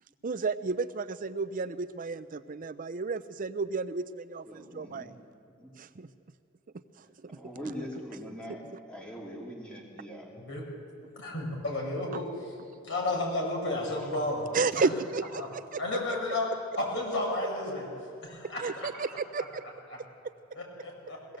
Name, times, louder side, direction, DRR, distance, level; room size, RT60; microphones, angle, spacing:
voice 1, 0.2-5.1 5.8-6.1 7.0-7.4 12.1-12.2 14.5-15.8 18.6-19.7 20.0-20.3, right 4 dB, 40° right, 13 dB, 0.5 m, -32 dB
voice 2, 4.5-5.1 5.6-5.7 7.0-10.3, equal, 5° left, -2 dB, 2.9 m, -42 dB
voice 3, 11.2-12.3 12.8-14.5 14.8-14.9 15.4-15.5 15.8-16.5 16.8-17.9 18.2-18.9 20.5-21.2, left 2 dB, 60° left, -1 dB, 6.0 m, -32 dB
21.5 x 17.5 x 7.9 m, 2.6 s
head